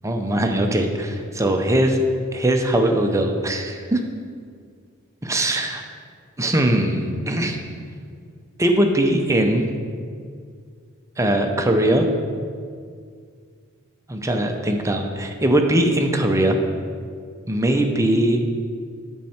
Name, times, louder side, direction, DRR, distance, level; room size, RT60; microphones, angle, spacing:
voice 1, 0.0-2.0 2.3-4.0 5.3-5.8 6.4-7.6 8.6-9.7 11.2-12.1 14.1-16.6 17.5-18.4, right 1 dB, 15° right, 3 dB, 0.6 m, -20 dB
9.0 x 6.4 x 4.3 m, 2.1 s
head